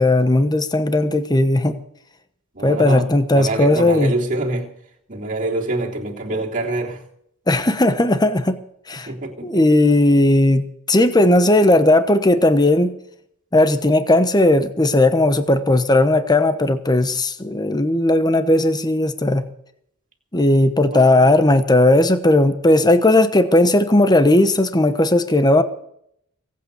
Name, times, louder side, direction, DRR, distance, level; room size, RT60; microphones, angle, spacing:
voice 1, 0.0-1.8 2.6-4.1 7.5-8.6 8.9-9.1 9.4-12.9 13.5-19.4 20.3-25.6, left 1 dB, 20° left, 1.1 m, -16 dB
voice 2, 2.5-4.7 5.1-7.1 9.0-9.8 20.9-21.5, right 2 dB, 40° right, 3.2 m, -26 dB
23.5 x 8.6 x 7.0 m
head